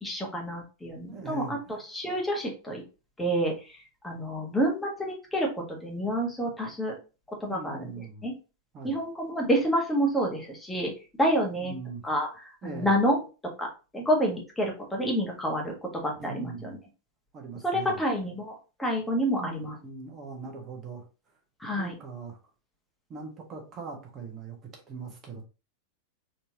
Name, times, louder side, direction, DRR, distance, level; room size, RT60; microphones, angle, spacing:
voice 1, 0.0-1.6 1.9-2.8 3.2-3.8 4.0-6.9 7.4-7.8 8.2-8.3 8.8-10.9 11.2-11.7 12.0-13.2 13.6-13.7 13.9-15.7 16.0-16.8 17.6-18.5 18.8-19.7 21.6-21.9, equal, 5° left, 0 dB, 1.4 m, -28 dB
voice 2, 1.1-1.8 7.5-8.3 8.7-9.0 11.6-12.0 12.6-12.9 16.2-16.8 17.3-18.0 19.4-21.0 21.8-22.4 23.1-25.5, right 5 dB, 25° right, 1 dB, 1.5 m, -41 dB
4.3 x 3.3 x 2.9 m, 0.32 s
figure-of-eight pair, 90°, 0 cm